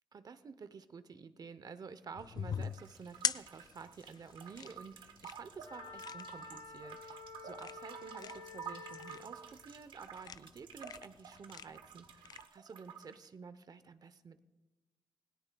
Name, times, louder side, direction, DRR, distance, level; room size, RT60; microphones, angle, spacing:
voice 1, 0.1-14.4, right 5 dB, 50° right, 13 dB, 0.8 m, -51 dB
sound 1, 2.1-12.4, left 7 dB, 55° left, 0.4 m, -43 dB
sound 2, 2.6-13.2, right 7 dB, 80° right, 0.9 m, -51 dB
Wind instrument woodwind instrument, 5.6-9.4, left 4 dB, 70° left, 1.1 m, -50 dB
18.5 x 17.5 x 2.3 m, 1.1 s
cardioid pair, 75°, 8 cm